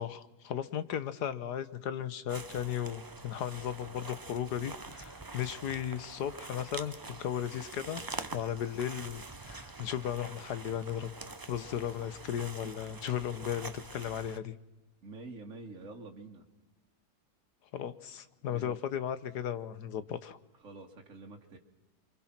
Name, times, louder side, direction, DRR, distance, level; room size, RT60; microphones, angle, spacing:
voice 1, 0.0-8.0 8.3-11.1 11.5-14.5 17.7-20.4, left 9 dB, 85° left, 14 dB, 1.6 m, -36 dB
sound 1, 2.3-14.4, right 3 dB, 20° right, 0.6 m, -45 dB
voice 2, 15.0-16.5 18.5-18.8 20.6-21.6, right 3 dB, 50° right, 1 dB, 2.3 m, -47 dB
27.0 x 25.0 x 6.0 m, 1.1 s
omnidirectional pair, 1.7 m